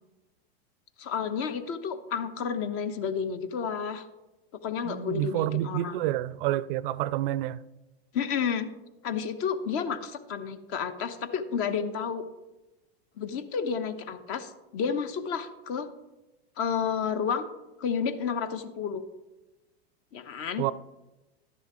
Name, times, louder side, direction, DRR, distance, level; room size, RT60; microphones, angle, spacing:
voice 1, 1.0-4.1 4.6-6.0 8.1-8.7 9.0-12.2 13.2-15.9 16.6-17.5 17.8-19.0 20.1-20.6, left 6 dB, 45° left, 1.0 m, -31 dB
voice 2, 4.8-7.6 20.6-20.7, right 14 dB, 60° right, 0.4 m, -28 dB
12.0 x 10.5 x 3.0 m
hypercardioid pair, 115°, 31 cm